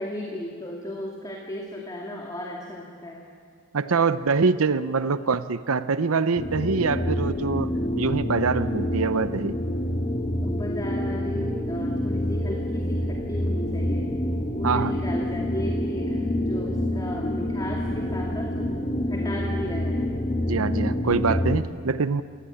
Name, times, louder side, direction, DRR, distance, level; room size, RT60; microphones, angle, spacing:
voice 1, 0.0-3.2 10.4-14.1 14.5-18.7 19.1-20.0, left 1 dB, 20° left, 0 dB, 2.3 m, -35 dB
voice 2, 3.7-9.6 14.6-14.9 20.5-22.2, right 4 dB, 85° right, 13 dB, 0.7 m, -24 dB
sound 1, 6.3-21.6, left 1 dB, 35° left, 2.1 m, -27 dB
27.5 x 18.0 x 9.8 m, 2.1 s
head